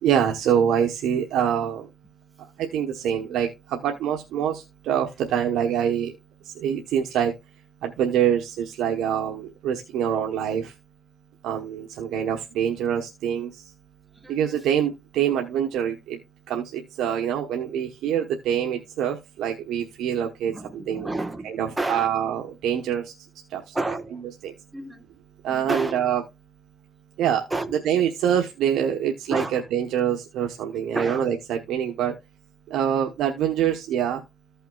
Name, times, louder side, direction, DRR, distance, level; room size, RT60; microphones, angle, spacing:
voice 1, 0.0-1.9 2.6-6.1 6.5-7.3 7.8-10.7 11.4-13.5 14.3-16.2 16.5-21.1 21.4-23.1 23.5-23.8 24.4-24.5 25.4-26.2 27.2-27.4 27.8-32.1 32.7-34.2, right 9 dB, 85° right, 1.0 m, -25 dB
voice 2, 14.1-14.6 20.5-21.5 21.8-22.1 23.7-24.2 24.7-25.1 25.5-26.0 27.5-27.8 29.3-29.7 30.9-31.3, right 2 dB, 15° right, 1.3 m, -30 dB
15.0 x 5.6 x 2.3 m
cardioid pair, 90°, 0 cm